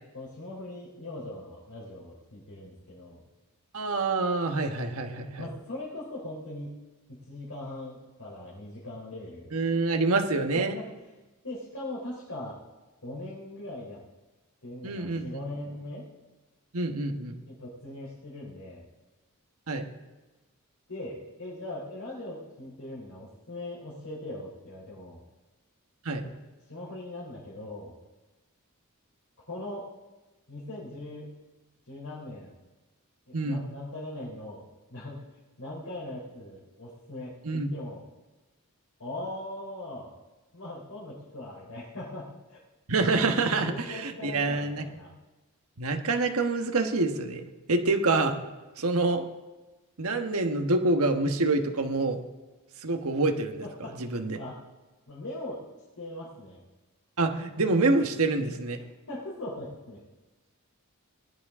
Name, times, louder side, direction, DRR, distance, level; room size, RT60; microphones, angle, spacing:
voice 1, 0.1-3.2 5.4-6.8 7.1-9.5 10.5-10.9 11.4-12.6 13.0-14.0 14.6-16.0 17.5-18.9 20.9-25.2 26.2-26.3 26.7-28.0 29.5-29.8 30.5-31.3 31.9-32.5 33.3-34.6 34.9-35.2 35.6-38.0 39.0-40.1 40.5-42.6 43.6-45.1 53.6-54.6 55.1-55.6 56.0-56.6 59.1-60.0, left 1 dB, 75° left, -6 dB, 3.7 m, -40 dB
voice 2, 3.7-5.5 9.5-10.7 14.8-15.4 16.7-17.4 19.7-19.8 26.0-26.2 33.3-33.7 37.4-37.7 42.9-44.8 45.8-48.4 48.8-49.2 50.0-52.2 52.8-53.6 53.9-54.4 57.2-58.8, right 3 dB, 75° right, 5 dB, 1.3 m, -26 dB
19.5 x 11.0 x 3.7 m, 1.2 s
head